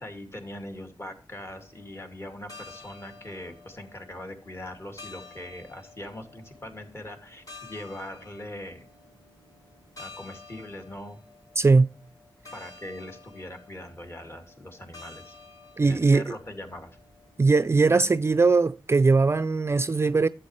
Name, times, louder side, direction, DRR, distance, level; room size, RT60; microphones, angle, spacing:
voice 1, 0.0-8.9 10.0-11.2 12.5-15.3 15.8-16.9 17.9-18.0, left 1 dB, 30° left, 2.3 m, -41 dB
sound 1, 1.5-17.9, left 3 dB, 45° left, 4.4 m, -51 dB
voice 2, 11.6-11.9 15.8-16.2 17.4-20.3, right 4 dB, 30° right, 0.4 m, -20 dB
12.0 x 7.7 x 3.1 m
wide cardioid pair, 80°, 8 cm